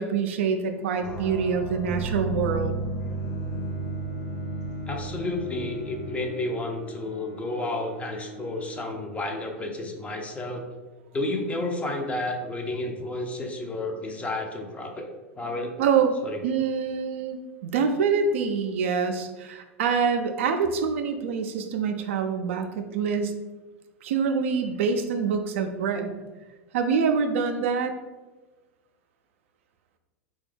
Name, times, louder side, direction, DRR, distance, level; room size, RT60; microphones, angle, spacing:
voice 1, 0.0-2.7 15.8-16.1 16.4-23.3 24.0-26.1 26.7-27.9, right 6 dB, 65° right, 6 dB, 0.3 m, -25 dB
sound 1, 1.0-6.1, right 2 dB, 45° left, 0.8 m, -32 dB
Bowed string instrument, 2.9-9.6, equal, 65° left, 1.2 m, -44 dB
voice 2, 4.9-10.7 11.1-15.1 15.4-15.8 16.2-16.4, left 2 dB, 15° left, 2 dB, 0.5 m, -31 dB
3.3 x 2.3 x 3.3 m, 1.2 s
hypercardioid pair, 90°, 7 cm